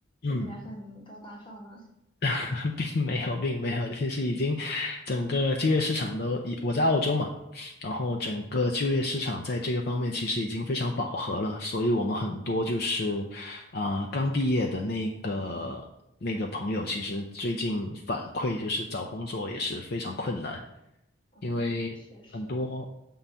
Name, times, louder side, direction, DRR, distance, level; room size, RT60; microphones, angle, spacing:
voice 1, 0.3-1.9 21.3-22.6, right 1 dB, 25° left, 0 dB, 1.3 m, -46 dB
voice 2, 2.2-15.8 16.2-20.6 21.4-22.0 22.3-22.9, left 2 dB, 55° left, 3 dB, 0.5 m, -29 dB
7.1 x 3.8 x 5.5 m, 0.86 s
head